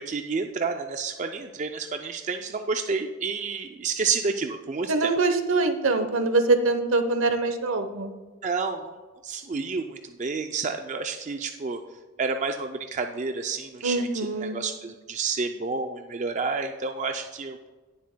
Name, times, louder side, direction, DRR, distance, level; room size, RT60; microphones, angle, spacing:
voice 1, 0.0-5.1 8.4-9.0 9.2-11.8 12.2-14.1 14.4-17.7, right 4 dB, 35° right, 6 dB, 0.4 m, -30 dB
voice 2, 4.9-8.1 13.8-14.6, right 3 dB, 80° right, 8 dB, 0.9 m, -24 dB
18.0 x 7.5 x 2.2 m, 1.3 s
head